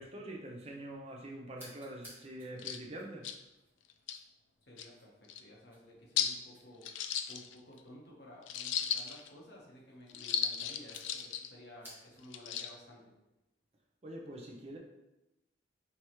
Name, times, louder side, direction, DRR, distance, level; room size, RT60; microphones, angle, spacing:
voice 1, 0.0-3.3 14.0-14.8, right 1 dB, 35° right, 0 dB, 0.5 m, -45 dB
sound 1, 1.5-12.4, equal, 10° right, 1.1 m, -61 dB
sound 2, 2.2-2.3 2.6-2.8 3.2-3.4 3.9-4.2 4.8-4.9 5.3-5.4 6.2-6.4 6.8-7.8 8.5-9.3 10.1-11.5 12.2-12.7, left 8 dB, 75° left, 0.3 m, -35 dB
voice 2, 4.7-6.9 7.3-13.1, left 1 dB, 60° left, -2 dB, 1.0 m, -54 dB
4.7 x 2.9 x 3.0 m, 0.96 s
head